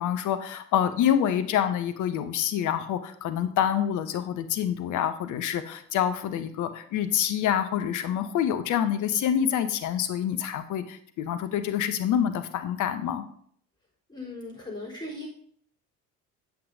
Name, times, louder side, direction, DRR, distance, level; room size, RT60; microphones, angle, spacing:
voice 1, 0.0-13.2, left 9 dB, 40° left, 11 dB, 0.8 m, -27 dB
voice 2, 14.1-15.3, left 2 dB, 10° left, -4 dB, 3.5 m, -38 dB
8.5 x 7.5 x 2.7 m, 0.63 s
figure-of-eight pair, 55°, 45 cm